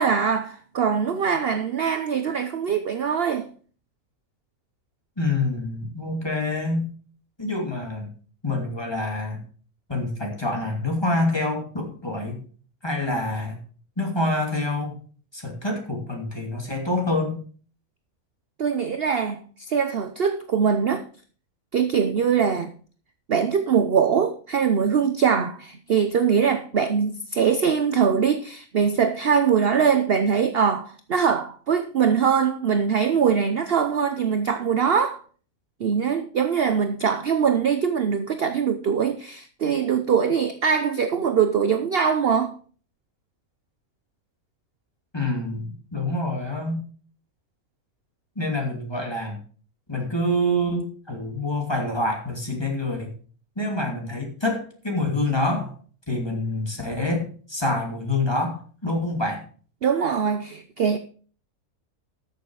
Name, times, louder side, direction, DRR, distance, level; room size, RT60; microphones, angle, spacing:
voice 1, 0.0-3.5 18.6-19.4 19.7-21.1 21.7-22.7 23.3-35.2 35.8-42.5 59.8-61.0, right 7 dB, 50° right, 9 dB, 0.8 m, -22 dB
voice 2, 5.2-6.9 7.4-8.1 8.4-9.4 9.9-12.4 12.8-13.6 14.0-15.0 15.3-17.4 45.1-46.8 48.4-49.4 49.9-53.1 53.6-55.7 56.1-59.4, left 1 dB, 15° left, 1 dB, 2.7 m, -26 dB
13.0 x 6.8 x 4.7 m, 0.42 s
omnidirectional pair, 1.5 m